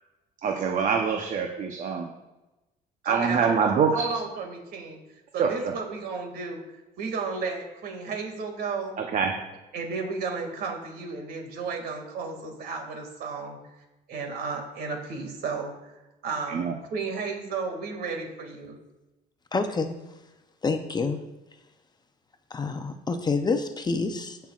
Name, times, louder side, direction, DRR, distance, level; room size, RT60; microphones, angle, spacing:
voice 1, 0.4-2.1 3.1-4.0 5.4-5.5 9.0-9.3 16.5-16.7, right 6 dB, 50° right, 2 dB, 0.9 m, -25 dB
voice 2, 3.0-5.0 5.3-6.6 7.0-9.0 9.7-13.6 14.1-16.7 16.9-18.7, right 4 dB, 65° right, 3 dB, 2.3 m, -33 dB
voice 3, 19.5-20.0 20.6-21.2 22.5-24.4, left 4 dB, 25° left, 7 dB, 0.7 m, -27 dB
16.0 x 5.7 x 2.5 m, 1.0 s
cardioid pair, 110°, 17 cm